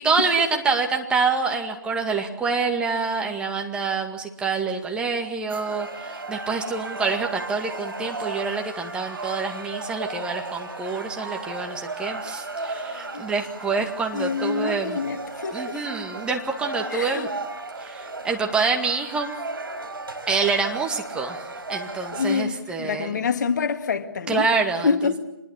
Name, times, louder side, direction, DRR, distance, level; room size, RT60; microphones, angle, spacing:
voice 1, 0.0-15.0 15.5-17.3 17.8-19.3 20.3-23.2 24.3-25.2, right 4 dB, 10° right, 2.0 m, -26 dB
sound 1, 5.5-22.4, right 3 dB, 75° right, 4.7 m, -35 dB
voice 2, 14.1-15.8 16.9-17.3 22.1-24.5 24.8-25.2, left 5 dB, 50° left, 2.0 m, -26 dB
26.5 x 21.0 x 7.2 m
figure-of-eight pair, 140°, 12 cm